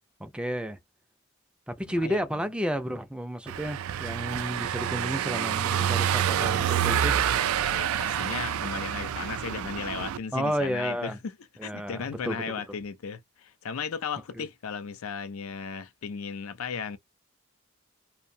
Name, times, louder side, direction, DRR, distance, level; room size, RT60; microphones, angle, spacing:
voice 1, 0.2-0.8 1.7-7.2 10.3-11.2 11.6-12.4 14.4-14.5, equal, 5° right, 0.4 m, -31 dB
voice 2, 1.8-2.2 7.6-11.4 11.6-17.0, left 6 dB, 80° left, 0.5 m, -36 dB
Car passing by / Engine, 3.5-10.2, right 9 dB, 85° right, 0.3 m, -27 dB
2.6 x 2.1 x 2.6 m
head